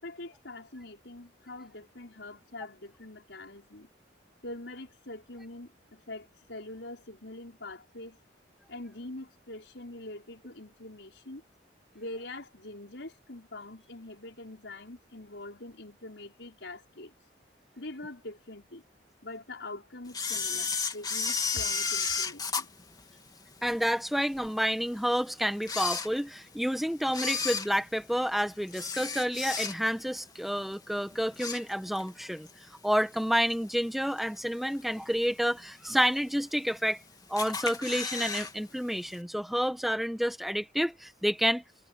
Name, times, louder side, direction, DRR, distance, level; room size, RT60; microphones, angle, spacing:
voice 1, 0.0-3.9 4.4-8.2 8.7-11.4 11.9-17.1 17.8-18.8 19.2-22.7, left 2 dB, 85° left, 5.2 m, -44 dB
Camera, 20.1-23.7 24.2-24.3 25.0-25.1 25.6-26.6 27.1-30.1 30.4-30.7 31.1-32.1 32.5-32.6 33.5-33.6 34.2-34.6 35.0-35.1 35.3-35.4 35.6-35.7 36.4-36.9 37.4-38.5 38.8-38.9 39.1-39.2, left 5 dB, 25° left, 3.0 m, -33 dB
voice 2, 23.6-32.5 32.8-37.0 37.3-41.6, equal, ahead, 1.5 m, -29 dB
head